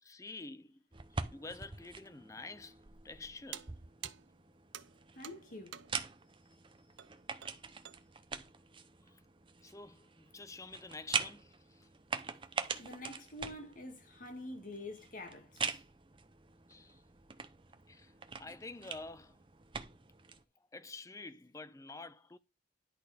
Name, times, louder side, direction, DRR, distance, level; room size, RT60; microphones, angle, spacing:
voice 1, 0.0-0.8 1.3-2.7 3.0-3.8 9.6-11.9 16.7-17.0 17.9-18.1 18.4-19.3 20.7-22.4, left 3 dB, 15° left, 0.5 m, -48 dB
sound 1, 0.9-20.4, right 5 dB, 30° right, 0.7 m, -44 dB
sound 2, 3.5-6.1 7.0-7.2 7.4-8.1, right 10 dB, 85° right, 0.6 m, -49 dB
voice 2, 5.1-5.8 12.8-15.8, left 2 dB, 45° left, 2.1 m, -47 dB
10.5 x 4.3 x 5.1 m
head